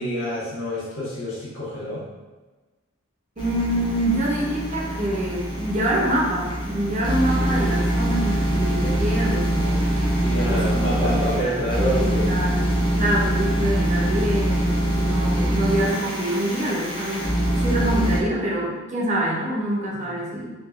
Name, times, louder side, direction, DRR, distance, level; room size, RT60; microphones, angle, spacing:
voice 1, 0.0-2.0 10.1-12.9, equal, 65° left, -6 dB, 1.1 m, -28 dB
sound 1, 3.4-18.2, right 1 dB, 20° left, 0.7 m, -24 dB
voice 2, 3.4-10.0 10.5-11.0 11.4-12.6 12.9-17.3 17.5-20.5, right 1 dB, 35° right, -3 dB, 0.5 m, -26 dB
4.7 x 2.3 x 2.4 m, 1.2 s
head